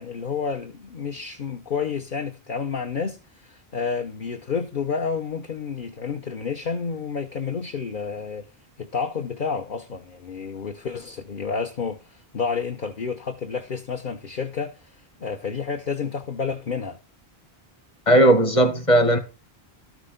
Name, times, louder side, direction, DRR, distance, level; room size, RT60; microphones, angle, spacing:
voice 1, 0.0-8.4 8.8-15.0 15.2-17.0, left 5 dB, 55° left, 1.1 m, -30 dB
voice 2, 18.1-19.2, right 1 dB, 30° left, 1.7 m, -16 dB
12.5 x 6.5 x 5.1 m
omnidirectional pair, 1.1 m